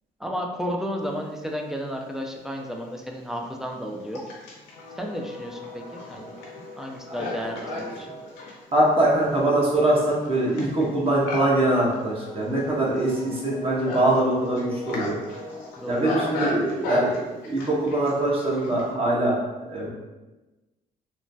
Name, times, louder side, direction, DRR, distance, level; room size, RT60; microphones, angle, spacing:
voice 1, 0.2-4.2 5.0-6.4 6.8-8.1 15.8-16.0, equal, 5° right, 1 dB, 0.5 m, -32 dB
Livestock farm animals working animals, 2.2-2.3 3.0-18.9, left 2 dB, 90° left, 0.6 m, -36 dB
voice 2, 7.1-7.8 8.7-15.2 15.9-19.9, right 1 dB, 35° right, -5 dB, 1.1 m, -23 dB
3.1 x 2.1 x 2.7 m, 1.1 s
supercardioid pair, 65°, 17 cm